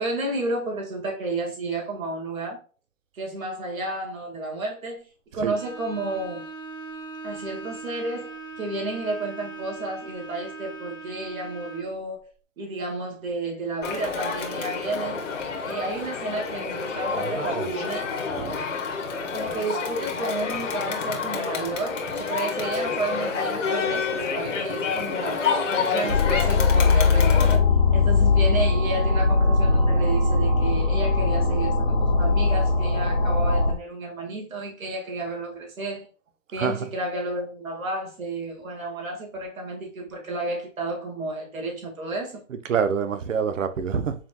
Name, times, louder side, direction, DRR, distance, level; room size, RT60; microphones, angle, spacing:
voice 1, 0.0-2.6 3.1-5.1 5.3-6.5 7.2-12.3 12.6-15.3 15.6-18.5 19.3-25.4 25.9-27.6 27.9-36.1 36.5-42.4, right 2 dB, 85° right, 2.0 m, -32 dB
Bowed string instrument, 5.5-12.0, right 3 dB, ahead, 0.6 m, -40 dB
Crowd, 13.8-27.5, left 5 dB, 65° left, 1.2 m, -28 dB
voice 2, 17.2-17.7 18.3-18.6 36.6-36.7 42.7-44.1, right 6 dB, 70° right, 0.7 m, -26 dB
sound 1, 26.1-33.7, left 3 dB, 30° left, 0.9 m, -20 dB
5.0 x 3.6 x 2.3 m
hypercardioid pair, 170°, 40 cm